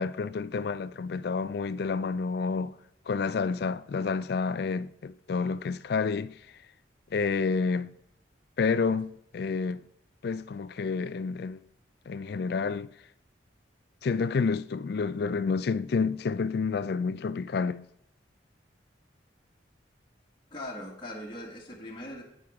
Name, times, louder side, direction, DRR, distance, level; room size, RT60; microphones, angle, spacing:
voice 1, 0.0-2.7 3.1-6.4 7.1-7.9 8.6-9.8 10.2-11.6 12.1-12.9 14.0-17.9, left 5 dB, 55° left, 0.3 m, -29 dB
voice 2, 20.5-22.2, left 1 dB, 25° left, 1.6 m, -40 dB
9.4 x 9.3 x 3.6 m
head